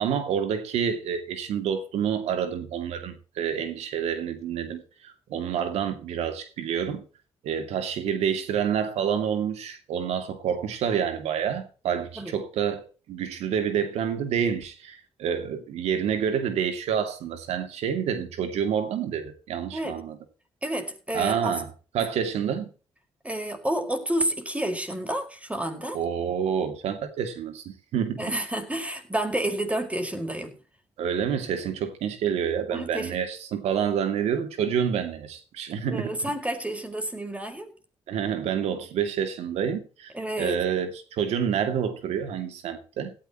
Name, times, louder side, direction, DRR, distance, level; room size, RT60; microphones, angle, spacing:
voice 1, 0.0-7.1 7.4-20.2 21.1-21.7 21.9-22.7 25.9-28.3 31.0-36.1 38.1-40.1 40.4-43.1, right 8 dB, 90° right, 2.5 m, -28 dB
voice 2, 20.6-21.6 23.2-26.0 28.2-30.5 32.7-33.2 35.9-37.7 40.1-40.6, right 1 dB, 10° right, 5.0 m, -30 dB
17.0 x 14.5 x 3.0 m
cardioid pair, 65°, 11 cm